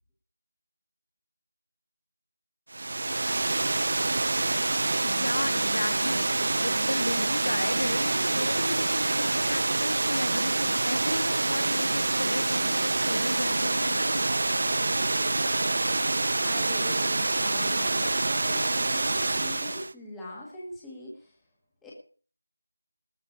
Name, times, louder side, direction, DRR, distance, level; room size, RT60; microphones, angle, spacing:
Water, 2.7-19.9, right 2 dB, 40° right, 0.5 m, -26 dB
voice 1, 5.0-14.3, left 1 dB, 65° left, 10 dB, 1.8 m, -34 dB
voice 2, 16.3-21.3 21.8-21.9, left 1 dB, 5° left, -6 dB, 1.7 m, -42 dB
20.0 x 6.9 x 5.2 m, 0.41 s
figure-of-eight pair, 175°, 0 cm